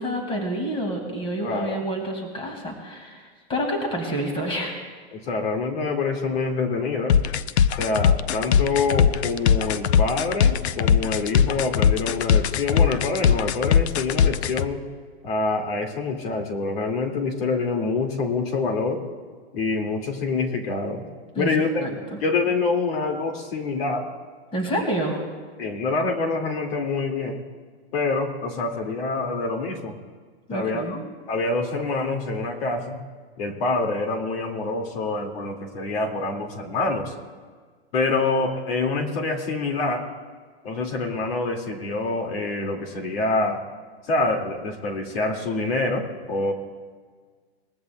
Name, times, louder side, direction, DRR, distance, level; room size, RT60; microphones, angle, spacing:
voice 1, 0.0-4.8 21.3-21.5 21.8-22.2 24.5-25.2 30.5-31.0, right 1 dB, 15° left, 2 dB, 2.2 m, -28 dB
voice 2, 1.4-1.8 5.1-7.2 7.8-14.8 15.2-19.0 19.5-21.0 21.4-21.9 22.2-24.1 25.6-27.4 27.9-30.0 30.5-31.0 31.3-33.0 33.4-37.1 37.9-40.1 40.6-43.6 44.1-46.5, left 3 dB, 65° left, 3 dB, 2.3 m, -26 dB
sound 1, 7.1-14.7, left 7 dB, 90° left, 0.6 m, -20 dB
21.5 x 14.5 x 2.3 m, 1.6 s
supercardioid pair, 150°, 32 cm